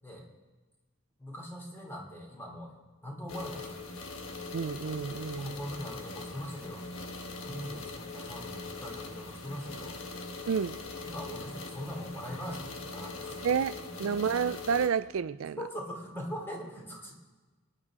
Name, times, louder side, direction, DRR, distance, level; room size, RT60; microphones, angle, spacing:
voice 1, 1.2-3.8 5.4-6.9 7.4-10.0 11.0-13.4 15.6-17.1, equal, 10° left, 2.8 m, -41 dB
sound 1, 3.3-14.9, left 3 dB, 70° left, 1.4 m, -41 dB
voice 2, 4.5-5.6 7.5-7.6 10.5-10.8 13.4-13.7 14.0-15.6, right 6 dB, 75° right, 0.4 m, -30 dB
27.0 x 9.9 x 3.7 m
head